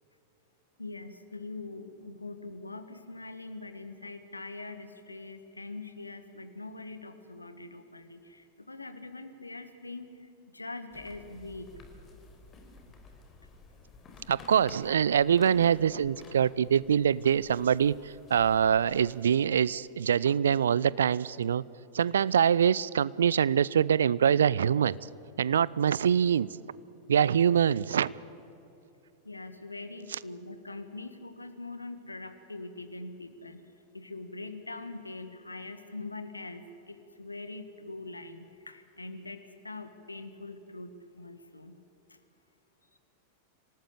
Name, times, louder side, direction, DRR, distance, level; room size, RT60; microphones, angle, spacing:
voice 1, 0.8-11.7 29.2-41.8 42.1-42.2 42.9-43.0, left 2 dB, 80° left, 10 dB, 1.6 m, -43 dB
sound 1, 10.9-19.2, left 3 dB, 25° left, 4.2 m, -52 dB
voice 2, 14.3-21.6 21.9-25.0 25.4-26.5 27.1-28.1, right 8 dB, 65° right, 21 dB, 0.5 m, -24 dB
26.5 x 18.0 x 8.5 m, 2.9 s
figure-of-eight pair, 90°, 0 cm